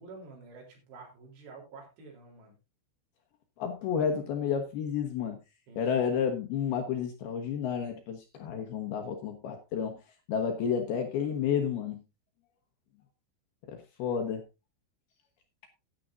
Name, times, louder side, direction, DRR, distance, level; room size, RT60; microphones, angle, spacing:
voice 1, 0.0-2.6 5.7-6.0, right 3 dB, 65° right, 5.6 m, -49 dB
voice 2, 3.6-5.4 5.8-10.0 10.3-12.0 13.7-14.5, left 7 dB, 70° left, 2.7 m, -31 dB
15.5 x 10.0 x 2.6 m
omnidirectional pair, 5.6 m